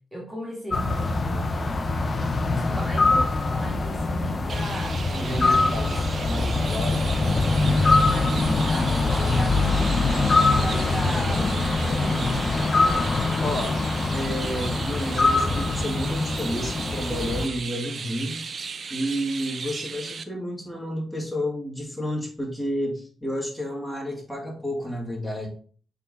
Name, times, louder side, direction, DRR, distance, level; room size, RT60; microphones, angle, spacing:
voice 1, 0.1-1.5 2.5-5.1 5.3-5.6 6.0-6.1 8.1-12.4, equal, 10° right, -3 dB, 2.3 m, -36 dB
sound 1, 0.7-17.5, left 3 dB, 40° left, 0.9 m, -23 dB
Chirp tweet, 4.5-20.2, right 5 dB, 55° right, 0.6 m, -36 dB
voice 2, 5.1-7.5 13.4-13.8 14.1-18.6 18.9-25.5, equal, 10° left, -3 dB, 2.6 m, -31 dB
6.5 x 3.9 x 4.0 m, 0.44 s
cardioid pair, 70°, 0 cm